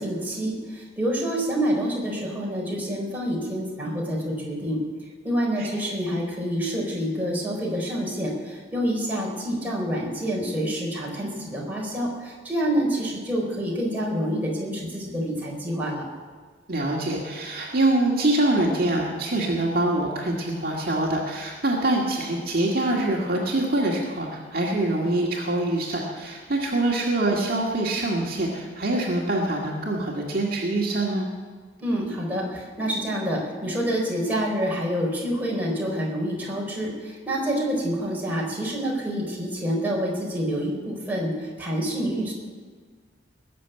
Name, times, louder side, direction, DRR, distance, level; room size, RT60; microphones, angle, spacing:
voice 1, 0.0-4.8 5.2-16.1 31.8-42.3, equal, 10° right, -3 dB, 4.2 m, -27 dB
voice 2, 16.7-31.3, right 2 dB, 50° right, -2 dB, 2.0 m, -24 dB
20.0 x 7.1 x 9.1 m, 1.5 s
head